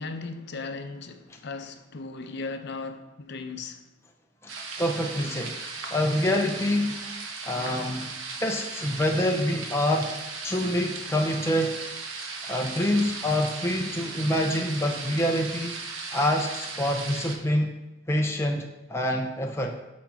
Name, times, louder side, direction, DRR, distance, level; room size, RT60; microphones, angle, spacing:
voice 1, 0.0-3.8, left 3 dB, 60° left, 0.6 m, -37 dB
sound 1, 4.5-17.4, right 4 dB, 80° right, 1.1 m, -37 dB
voice 2, 4.8-5.6 5.9-7.0 7.5-8.1 8.4-10.1 10.4-11.8 12.4-15.8 16.1-17.7 18.1-19.7, left 1 dB, 15° left, 0.5 m, -26 dB
6.2 x 5.7 x 5.7 m
head